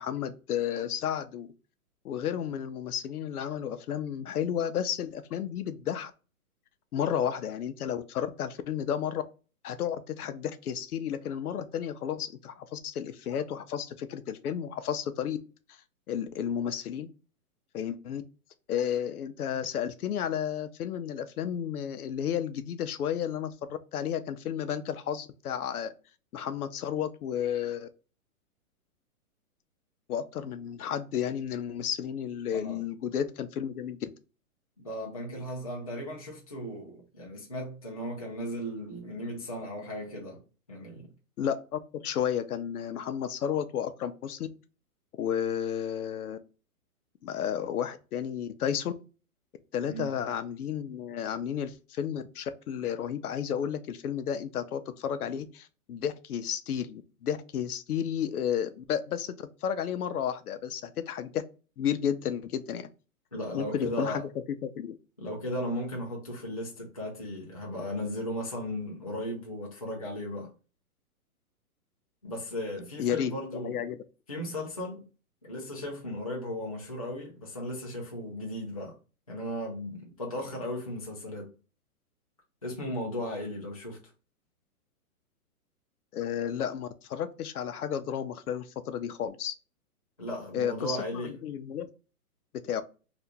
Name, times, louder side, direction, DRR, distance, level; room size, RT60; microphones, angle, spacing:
voice 1, 0.0-1.5 2.0-6.1 6.9-9.2 9.6-15.4 16.1-17.1 17.7-18.2 18.7-25.9 26.3-27.9 30.1-34.1 41.4-44.5 45.2-46.4 47.2-48.9 49.7-61.4 61.8-62.8 63.5-64.9 73.0-73.3 73.6-74.0 86.1-89.5 90.5-91.9 92.6-92.8, left 9 dB, 80° left, 0.6 m, -32 dB
voice 2, 34.8-40.4 40.7-41.1 49.9-50.2 63.3-64.3 65.2-70.5 72.2-73.8 74.3-75.0 75.4-79.0 79.3-81.5 82.6-84.0 90.2-91.4, left 1 dB, 25° left, 0.4 m, -36 dB
2.9 x 2.5 x 3.4 m
hypercardioid pair, 170°, 44 cm